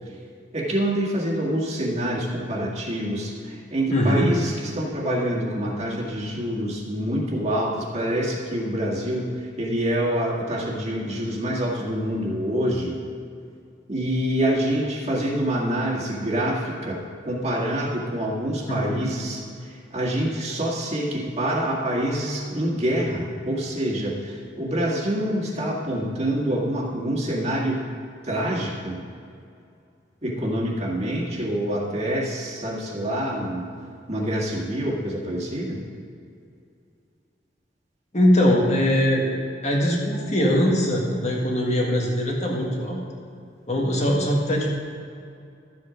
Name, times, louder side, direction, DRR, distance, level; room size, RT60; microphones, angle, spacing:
voice 1, 0.5-13.0 13.9-27.8 28.2-29.0 30.2-33.7 34.1-35.8, right 1 dB, 35° right, -3 dB, 1.9 m, -26 dB
voice 2, 3.9-4.3 18.7-19.0 38.1-39.3 39.6-43.0 43.7-44.7, equal, 40° left, -2 dB, 1.7 m, -21 dB
12.0 x 7.9 x 5.1 m, 2.4 s
head